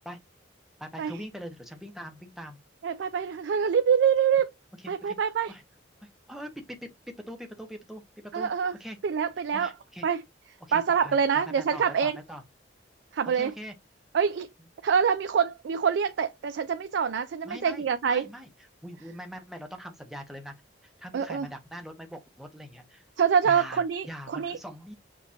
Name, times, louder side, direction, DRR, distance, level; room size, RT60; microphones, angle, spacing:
voice 1, 0.8-2.6 5.0-5.6 6.3-6.9 7.2-8.5 8.8-9.0 9.5-10.1 10.6-11.2 11.6-12.4 13.3-13.7 17.4-18.5 18.8-20.5 21.0-23.1 23.4-24.9, equal, ahead, 0.8 m, -42 dB
voice 2, 2.8-4.5 4.9-5.5 8.3-8.7 9.0-9.7 10.0-10.2 10.7-12.2 13.1-13.5 14.1-14.5 14.8-18.3 21.1-21.5 23.2-24.6, right 7 dB, 70° right, 0.4 m, -25 dB
6.1 x 2.5 x 2.7 m
head